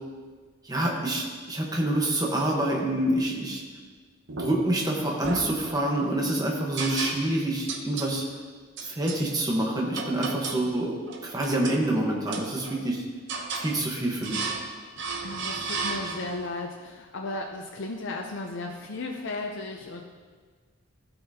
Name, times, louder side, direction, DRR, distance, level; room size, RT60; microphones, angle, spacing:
voice 1, 0.6-3.6 4.3-8.2 8.8-13.0 13.6-14.5, right 1 dB, 20° right, -1 dB, 1.2 m, -27 dB
sound 1, 4.3-4.8 5.2-6.1 6.8-7.4 7.7-8.1 8.8-9.2 9.9-10.7 11.1-11.8 12.3-12.9 13.3-13.7 14.2-14.7 15.0-16.4, right 4 dB, 65° right, 0.9 m, -34 dB
voice 2, 15.2-20.0, left 2 dB, 65° left, 1 dB, 0.6 m, -35 dB
15.0 x 5.7 x 2.8 m, 1.5 s
head